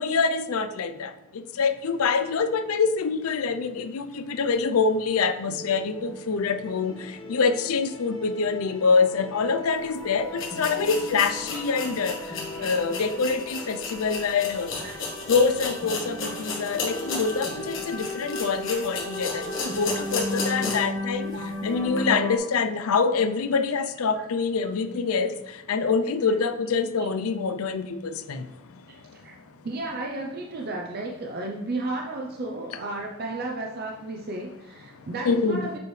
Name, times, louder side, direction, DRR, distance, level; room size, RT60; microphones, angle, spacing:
voice 1, 0.0-14.8 15.3-21.4 21.6-29.4 34.9-35.7, left 5 dB, 90° left, 10 dB, 0.5 m, -26 dB
sound 1, 5.5-22.4, left 1 dB, 20° left, 1.0 m, -36 dB
sound 2, 9.8-9.9 10.3-21.0 21.3-21.4 21.9-22.0, left 4 dB, 60° left, 1.4 m, -34 dB
voice 2, 21.3-21.7 24.1-24.2 28.9-29.4 29.6-35.8, right 2 dB, 45° right, 0 dB, 0.6 m, -34 dB
7.0 x 4.7 x 3.2 m, 0.92 s
head